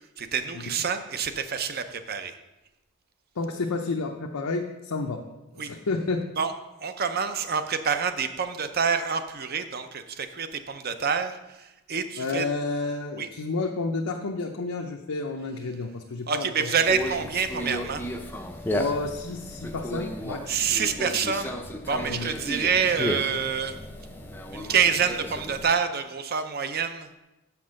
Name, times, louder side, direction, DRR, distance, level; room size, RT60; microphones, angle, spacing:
voice 1, 0.2-2.3 5.6-5.7 6.4-6.5 6.8-12.5 13.2-13.3 16.3-18.1 20.5-21.5 21.9-23.8 24.5-27.1, right 6 dB, 45° right, 9 dB, 0.6 m, -27 dB
voice 2, 3.4-5.2 5.5-6.2 12.2-16.7 18.7-20.6 22.1-22.3, left 3 dB, 80° left, 2 dB, 0.7 m, -30 dB
Conversation, 16.8-25.7, equal, 10° left, 0.5 m, -34 dB
6.8 x 5.9 x 6.3 m, 0.99 s
head